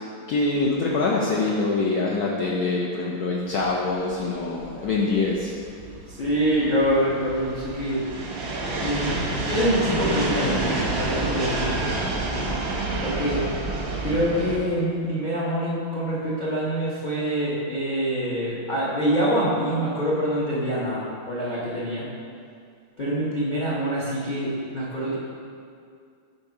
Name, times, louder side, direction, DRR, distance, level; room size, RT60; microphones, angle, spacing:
voice 1, 0.3-5.5, left 3 dB, 75° left, -3 dB, 0.8 m, -24 dB
sound 1, 3.6-14.6, right 2 dB, 50° right, 0.8 m, -28 dB
voice 2, 6.2-8.0 8.8-9.1 9.5-11.8 13.0-13.5 14.0-22.1 23.0-25.2, equal, 45° left, -8 dB, 0.5 m, -25 dB
5.3 x 4.2 x 4.7 m, 2.3 s
omnidirectional pair, 2.2 m